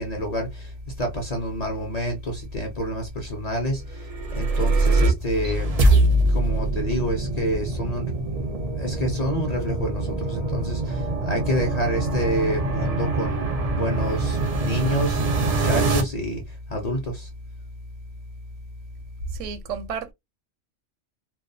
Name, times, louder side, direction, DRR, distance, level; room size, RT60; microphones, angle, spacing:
voice 1, 0.0-6.0 6.3-17.3, equal, 45° left, 0.6 m, -28 dB
sound 1, 4.0-16.0, right 2 dB, 50° right, 0.5 m, -24 dB
voice 2, 19.3-20.1, right 6 dB, 85° right, 0.9 m, -32 dB
2.2 x 2.2 x 2.6 m
omnidirectional pair, 1.2 m